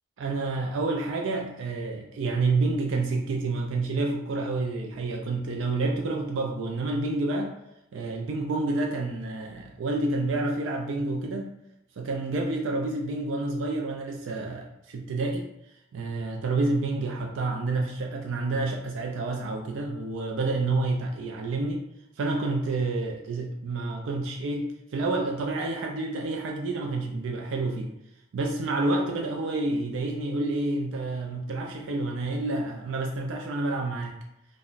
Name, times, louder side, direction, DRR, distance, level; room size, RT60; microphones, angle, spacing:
voice 1, 0.2-7.6 7.9-11.6 12.0-15.5 15.9-21.8 22.2-27.9 28.3-34.2, right 2 dB, 85° right, 1 dB, 0.3 m, -29 dB
2.4 x 2.1 x 3.8 m, 0.83 s
head